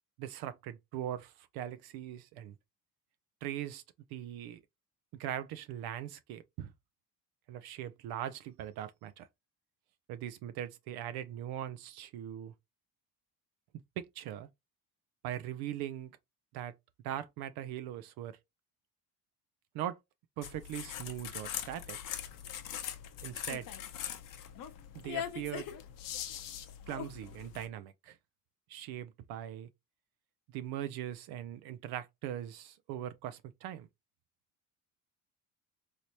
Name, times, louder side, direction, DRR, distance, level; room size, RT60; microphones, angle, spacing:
voice 1, 0.2-2.5 3.4-3.8 4.1-4.6 5.1-6.7 7.5-9.3 10.1-12.5 14.0-14.5 15.2-16.1 16.5-16.7 17.0-18.4 19.7-20.0 20.4-22.0 23.2-23.7 24.9-25.7 26.9-28.2 28.7-29.7 30.5-33.9, right 11 dB, 70° right, 0.5 m, -40 dB
sound 1, 20.4-27.7, left 10 dB, 55° left, 0.7 m, -41 dB
3.2 x 2.8 x 2.7 m
supercardioid pair, 85°, 39 cm